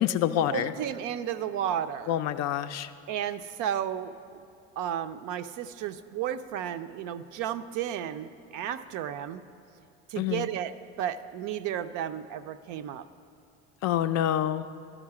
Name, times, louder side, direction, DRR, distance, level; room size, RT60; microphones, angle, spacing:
voice 1, 0.0-0.7 2.1-2.9 10.2-10.5 13.8-14.7, left 11 dB, 45° left, 10 dB, 0.4 m, -27 dB
voice 2, 0.5-2.2 3.1-4.4 4.8-9.4 10.1-13.1, right 10 dB, 55° right, 12 dB, 0.5 m, -33 dB
11.5 x 5.0 x 7.4 m, 2.5 s
hypercardioid pair, 60°, 38 cm